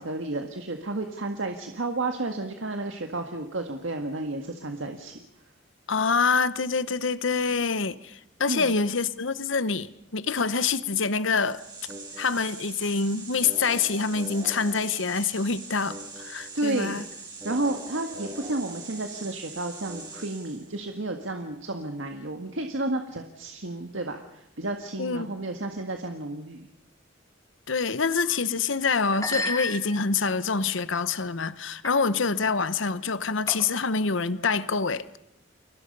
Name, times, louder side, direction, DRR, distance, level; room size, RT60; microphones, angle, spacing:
voice 1, 0.0-5.2 8.5-8.7 16.5-17.0 17.4-26.7, right 2 dB, 70° right, 1.8 m, -32 dB
voice 2, 5.9-11.6 12.2-17.0 25.0-25.3 27.7-35.2, left 5 dB, 70° left, 1.0 m, -26 dB
sound 1, 11.2-20.8, right 3 dB, 20° right, 5.8 m, -41 dB
sound 2, 28.2-28.4 29.1-30.3 30.9-31.2 31.8-32.0 32.3-32.5 33.5-33.9, left 2 dB, 15° left, 2.2 m, -33 dB
30.0 x 23.5 x 5.5 m
head